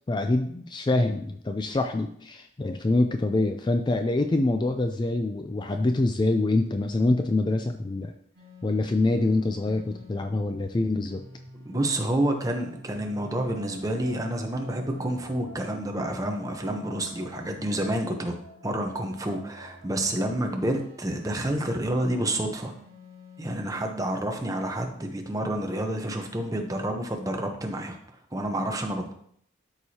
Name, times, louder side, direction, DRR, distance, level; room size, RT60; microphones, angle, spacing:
voice 1, 0.1-8.1 8.6-11.2, left 2 dB, 25° left, 6 dB, 0.3 m, -25 dB
sound 1, 8.3-24.1, left 2 dB, 45° right, 3.2 m, -49 dB
voice 2, 11.6-18.3 18.6-22.7 23.4-28.0 28.3-29.1, right 1 dB, 15° right, 3 dB, 0.8 m, -29 dB
sound 2, 12.4-21.4, equal, 85° left, 2.2 m, -50 dB
12.5 x 4.8 x 2.8 m, 0.67 s
head